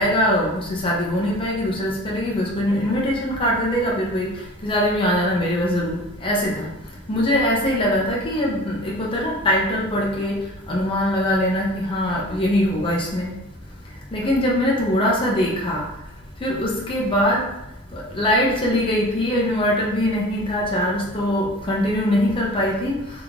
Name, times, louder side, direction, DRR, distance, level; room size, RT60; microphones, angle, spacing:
voice 1, 0.0-13.4 14.1-15.9 16.4-17.5 17.9-23.2, left 1 dB, 25° left, -3 dB, 0.7 m, -22 dB
3.6 x 3.5 x 3.5 m, 0.86 s
head